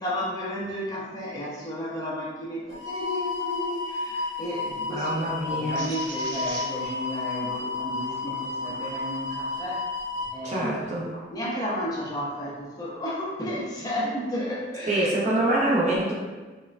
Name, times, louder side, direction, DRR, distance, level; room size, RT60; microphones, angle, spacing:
voice 1, 0.0-9.9 10.3-11.0 11.3-15.1 15.3-15.5, equal, 20° left, -5 dB, 0.4 m, -33 dB
sound 1, 2.7-10.3, left 3 dB, 75° left, 0.7 m, -32 dB
voice 2, 4.9-5.8 10.4-11.1 14.9-16.1, right 1 dB, 35° right, -4 dB, 0.5 m, -25 dB
sound 2, 5.8-11.3 11.8-13.0, right 2 dB, 85° right, 0.6 m, -44 dB
3.1 x 2.1 x 2.4 m, 1.3 s
head